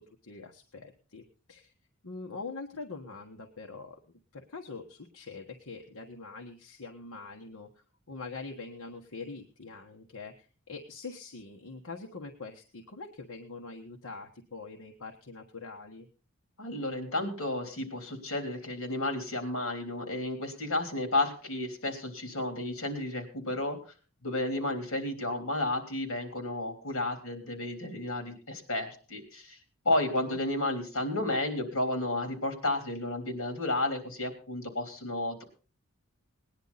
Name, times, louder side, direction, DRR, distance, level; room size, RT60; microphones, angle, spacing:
voice 1, 0.0-1.7 2.0-4.0 4.3-7.7 8.1-16.1 29.9-30.4, left 3 dB, 85° left, 2 dB, 1.4 m, -44 dB
voice 2, 16.6-23.8 24.2-29.6 29.9-35.4, left 2 dB, 65° left, 5 dB, 3.6 m, -32 dB
19.0 x 10.5 x 4.1 m, 0.37 s
head